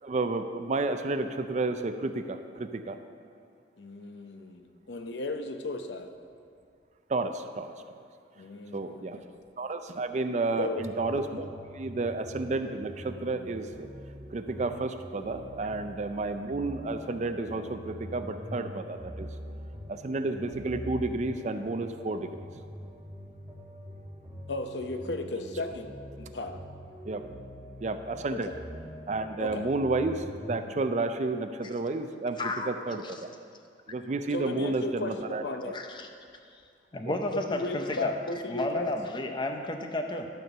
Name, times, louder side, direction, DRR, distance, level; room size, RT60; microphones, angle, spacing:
voice 1, 0.0-3.0 7.1-8.0 8.7-9.2 9.6-13.9 14.3-19.3 19.9-22.5 27.0-27.2 27.8-28.5 29.1-32.4 32.7-33.3 33.9-35.4 37.1-37.2, right 3 dB, 40° right, 9 dB, 0.4 m, -31 dB
voice 2, 3.8-6.1 8.4-9.2 10.6-10.9 24.5-26.6 28.3-28.6 29.4-29.7 34.3-35.8 37.3-38.9, left 2 dB, 75° left, 6 dB, 0.7 m, -35 dB
sound 1, 10.8-30.6, equal, 10° right, 1.2 m, -44 dB
voice 3, 32.4-32.7 33.1-33.2 35.7-36.1 36.5-36.6 36.9-38.1 38.5-40.3, left 2 dB, 25° left, 4 dB, 0.6 m, -32 dB
12.0 x 4.5 x 6.7 m, 2.2 s
head